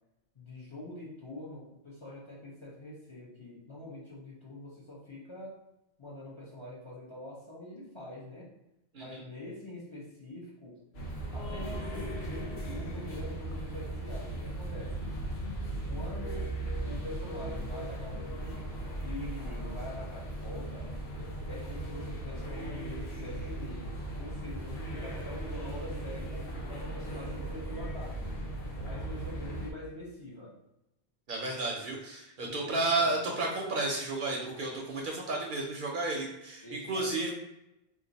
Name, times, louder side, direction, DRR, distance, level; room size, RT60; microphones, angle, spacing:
voice 1, 0.3-5.6 6.0-8.5 8.9-10.8 11.3-15.2 15.9-16.5 16.8-20.9 21.5-28.3 28.8-30.5 32.4-33.3 36.6-37.3, left 1 dB, 30° left, -6 dB, 0.7 m, -45 dB
sound 1, 10.9-29.7, right 1 dB, 70° left, 1.0 m, -37 dB
voice 2, 31.3-37.3, right 2 dB, 60° right, 0 dB, 0.7 m, -32 dB
2.5 x 2.4 x 3.9 m, 0.88 s
omnidirectional pair, 1.1 m